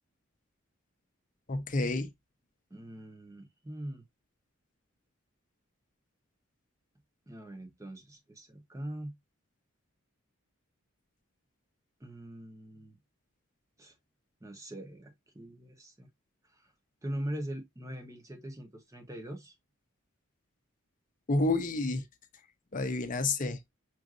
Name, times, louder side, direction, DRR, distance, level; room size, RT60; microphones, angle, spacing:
voice 1, 1.5-2.1 21.3-22.0 22.7-23.6, left 2 dB, 40° left, 0.6 m, -29 dB
voice 2, 2.7-4.0 7.3-9.1 12.0-13.0 13.8-13.9 14.4-16.1 16.5-16.7 17.0-19.5, right 1 dB, 15° right, 0.8 m, -42 dB
6.0 x 2.6 x 2.4 m
head